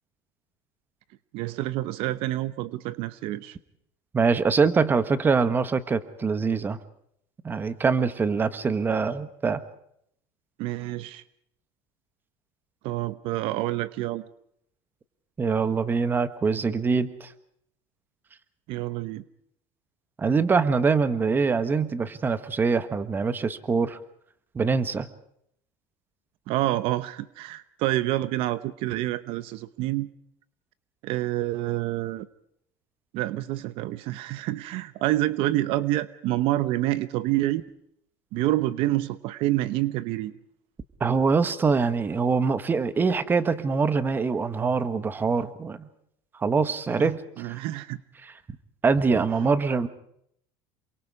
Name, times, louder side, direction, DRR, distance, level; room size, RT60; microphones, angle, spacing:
voice 1, 1.3-3.6 10.6-11.2 12.8-14.3 18.7-19.2 26.5-30.1 31.0-32.3 33.1-37.6 38.3-40.3 47.0-48.0, right 16 dB, 65° right, 14 dB, 1.0 m, -28 dB
voice 2, 4.1-6.8 7.4-9.6 15.4-17.3 20.2-24.0 24.5-25.1 41.0-45.9 46.4-47.2 47.4-47.6 48.2-48.3 48.8-49.9, right 5 dB, 20° right, 12 dB, 1.4 m, -24 dB
27.5 x 23.5 x 4.9 m, 0.71 s
cardioid pair, 140°, 10 cm